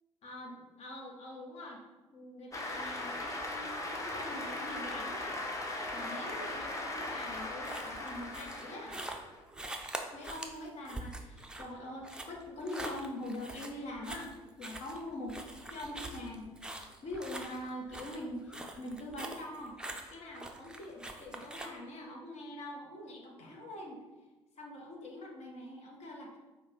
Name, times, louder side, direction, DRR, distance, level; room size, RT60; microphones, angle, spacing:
voice 1, 0.2-1.8 2.1-5.4 5.9-9.0 10.1-15.4 15.7-19.8 20.1-24.0 24.6-26.4, left 1 dB, 45° left, -1 dB, 1.1 m, -44 dB
Cheering / Applause, 2.5-9.4, left 2 dB, 20° left, 0.9 m, -39 dB
sound 1, 7.3-21.7, right 1 dB, 5° right, 0.5 m, -44 dB
5.2 x 2.3 x 3.9 m, 1.2 s
figure-of-eight pair, 50°, 15 cm